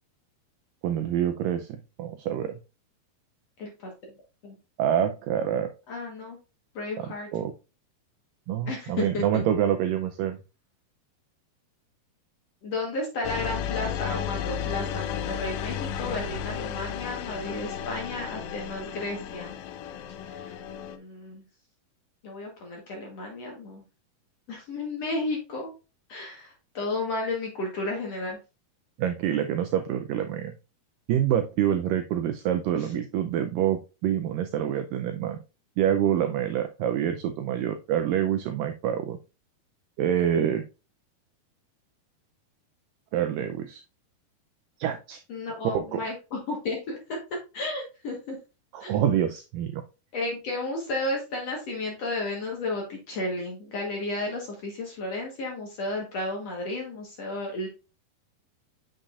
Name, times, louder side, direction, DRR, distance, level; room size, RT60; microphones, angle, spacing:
voice 1, 0.8-2.5 4.8-5.7 7.0-7.5 8.5-10.4 29.0-30.5 31.1-35.4 35.8-39.2 40.0-40.6 43.1-43.8 44.8-45.2 45.6-46.1 48.7-49.8, right 10 dB, 85° right, 7 dB, 1.9 m, -26 dB
voice 2, 3.6-3.9 4.4-4.6 5.9-6.4 6.8-7.3 8.7-9.4 12.6-19.6 20.2-20.5 20.9-21.4 22.2-23.8 24.5-25.7 26.1-28.4 32.7-32.9 45.3-48.4 48.8-49.0 50.1-57.7, left 2 dB, 55° left, 0 dB, 1.9 m, -33 dB
sound 1, 13.2-21.0, left 9 dB, 85° left, 1.9 m, -33 dB
7.5 x 6.6 x 2.5 m, 0.29 s
omnidirectional pair, 4.5 m